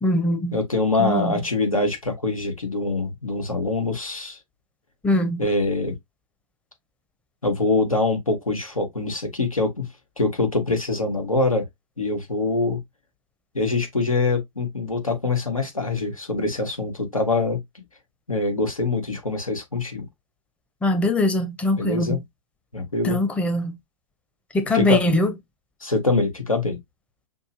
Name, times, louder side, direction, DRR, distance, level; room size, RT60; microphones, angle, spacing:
voice 1, 0.0-0.6 1.0-1.3 5.0-5.4 20.8-22.2 23.0-23.8 24.5-25.3, left 1 dB, 5° left, 0.6 m, -22 dB
voice 2, 0.5-4.4 5.4-5.9 7.4-9.9 10.2-11.6 12.0-12.8 13.5-17.6 18.3-20.0 21.8-22.2 22.7-23.2 24.7-25.0 25.8-26.8, left 3 dB, 90° left, 1.6 m, -24 dB
6.2 x 2.3 x 2.8 m
figure-of-eight pair, 105°, 17 cm